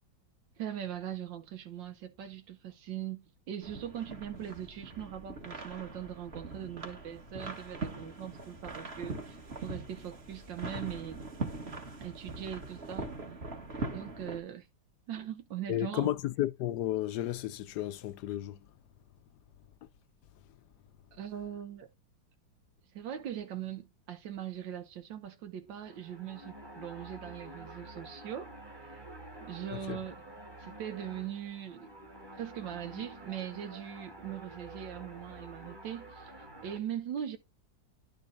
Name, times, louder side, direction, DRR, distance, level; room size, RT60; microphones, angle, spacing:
voice 1, 0.6-11.2 12.0-13.1 13.9-14.7 15.1-16.2 21.1-21.9 22.9-29.0 29.4-30.2 30.6-31.9 32.3-37.4, right 10 dB, 85° right, 1.5 m, -41 dB
sound 1, 3.6-14.4, right 3 dB, 35° right, 1.6 m, -42 dB
voice 2, 15.7-18.6 29.7-30.0, left 14 dB, 70° left, 1.1 m, -33 dB
sound 2, 25.7-36.8, right 1 dB, 15° right, 1.3 m, -49 dB
11.0 x 5.2 x 2.6 m
omnidirectional pair, 2.0 m